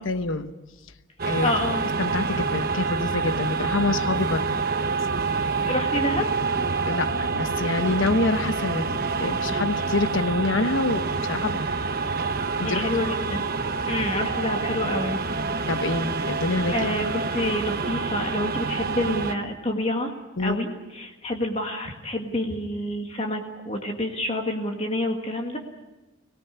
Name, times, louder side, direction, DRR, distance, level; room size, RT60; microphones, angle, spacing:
voice 1, 0.0-0.5 1.2-1.5 2.0-4.6 4.8-5.0 6.8-11.6 12.6-13.1 15.7-16.9 20.4-20.6, left 2 dB, 80° left, 10 dB, 1.1 m, -26 dB
sound 1, 1.2-19.3, right 4 dB, 45° right, 1.1 m, -27 dB
voice 2, 1.4-1.8 5.3-6.5 12.6-13.4 13.9-15.2 16.7-20.1 20.4-25.6, left 1 dB, 30° left, 3 dB, 1.9 m, -28 dB
25.0 x 18.0 x 8.4 m, 1.1 s
head